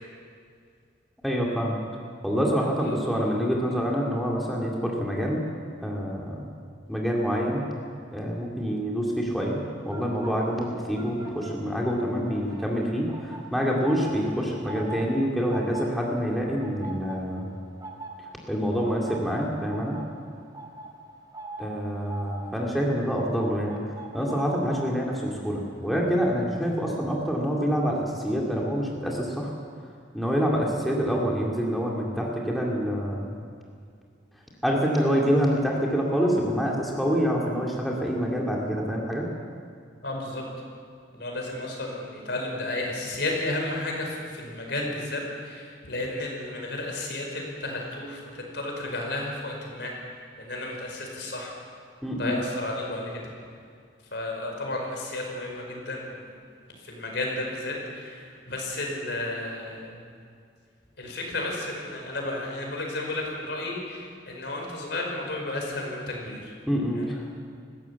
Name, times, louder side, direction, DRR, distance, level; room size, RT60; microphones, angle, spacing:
voice 1, 1.2-1.8 2.2-5.4 5.8-6.5 6.9-7.6 8.1-17.5 18.5-20.0 21.6-23.8 24.1-29.5 30.1-33.4 34.6-39.3 52.0-52.4 66.7-67.5, equal, ahead, -3 dB, 2.3 m, -26 dB
sound 1, 9.8-12.0 12.2-27.1 27.4-27.7, right 2 dB, 20° right, 2.6 m, -43 dB
voice 2, 40.0-40.5 41.1-49.9 50.4-51.5 52.2-53.2 54.1-56.3 56.8-60.0 61.0-66.5, left 2 dB, 60° left, 0 dB, 5.1 m, -32 dB
20.5 x 16.0 x 8.3 m, 2.3 s
head